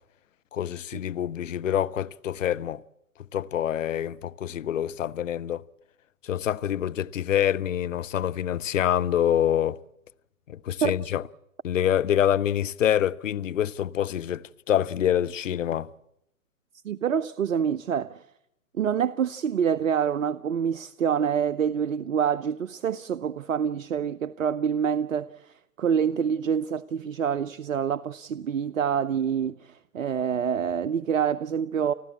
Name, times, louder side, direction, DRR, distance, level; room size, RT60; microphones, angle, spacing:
voice 1, 0.5-2.8 3.3-5.6 6.2-9.8 10.5-11.2 11.6-15.9, left 10 dB, 55° left, 0.8 m, -26 dB
voice 2, 10.8-11.1 16.8-18.2 18.8-31.9, right 8 dB, 60° right, 0.8 m, -26 dB
30.0 x 12.5 x 8.6 m
figure-of-eight pair, 135°, 45 cm